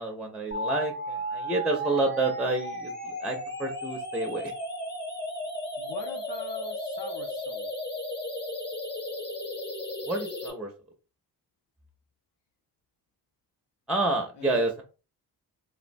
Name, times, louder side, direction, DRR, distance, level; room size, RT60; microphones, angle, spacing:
voice 1, 0.0-4.5 10.0-10.7 13.9-14.8, right 2 dB, 5° right, 0.4 m, -29 dB
sound 1, 0.5-10.5, equal, 25° left, 0.9 m, -35 dB
voice 2, 5.8-7.7 14.3-14.7, left 4 dB, 80° left, 0.7 m, -43 dB
3.3 x 2.0 x 2.5 m
cardioid pair, 100°, 40 cm